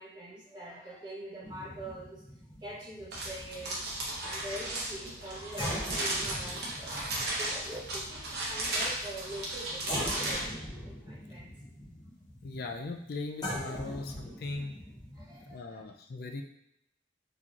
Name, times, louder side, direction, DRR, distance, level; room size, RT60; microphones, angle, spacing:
voice 1, 0.0-2.2 2.6-3.9 4.2-10.5 10.8-11.6 15.1-15.8, right 1 dB, 20° right, -8 dB, 1.1 m, -44 dB
sound 1, 1.4-4.7 5.1-5.2 5.6-9.5 9.9-15.6, equal, 20° left, 0.8 m, -42 dB
sound 2, 3.1-10.4, right 1 dB, 55° right, 0.9 m, -35 dB
voice 2, 12.4-14.8 15.5-16.4, left 3 dB, 50° left, 4 dB, 0.4 m, -39 dB
4.1 x 3.0 x 2.4 m, 0.78 s
head